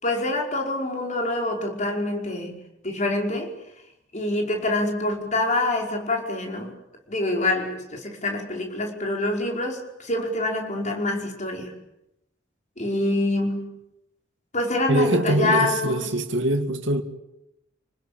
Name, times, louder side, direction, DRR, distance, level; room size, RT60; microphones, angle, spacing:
voice 1, 0.0-3.5 4.1-6.7 7.1-11.8 12.8-13.7 14.5-16.0, left 2 dB, 40° left, 5.3 m, -26 dB
voice 2, 14.9-17.0, right 1 dB, 85° right, 2.3 m, -23 dB
29.5 x 20.5 x 8.9 m
head